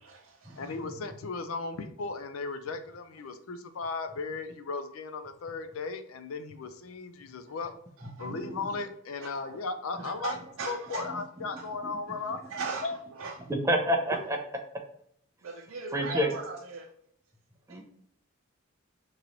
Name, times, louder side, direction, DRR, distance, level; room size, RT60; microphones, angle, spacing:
voice 1, 0.0-0.7 8.2-8.3 9.2-9.6 10.0-11.1 11.6-11.7 12.5-12.9 13.2-13.4 14.1-14.2 15.4-16.9 17.7-17.8, right 4 dB, 90° right, -2 dB, 0.6 m, -38 dB
voice 2, 0.6-7.7 8.2-10.4 10.7-12.4 12.8-13.0, left 4 dB, 80° left, 10 dB, 0.5 m, -36 dB
voice 3, 8.3-8.6 13.5-14.4 15.9-16.3 17.7-17.8, equal, 15° right, 2 dB, 0.5 m, -27 dB
3.0 x 3.0 x 3.8 m, 0.69 s
head